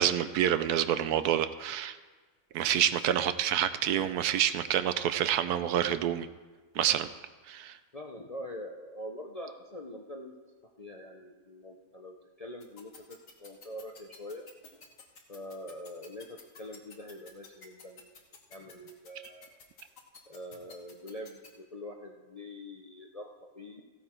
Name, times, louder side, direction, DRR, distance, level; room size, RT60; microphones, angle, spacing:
voice 1, 0.0-2.0 2.5-6.3 6.7-7.1 7.5-7.8, right 10 dB, 75° right, 12 dB, 1.1 m, -27 dB
voice 2, 7.9-10.3 10.8-14.5 15.3-18.2 18.5-19.6 20.3-23.3 23.5-23.8, left 1 dB, 40° left, 1 dB, 0.6 m, -44 dB
sound 1, 12.6-21.5, left 5 dB, 55° left, 1.7 m, -51 dB
15.0 x 8.8 x 4.4 m, 1.4 s
omnidirectional pair, 1.7 m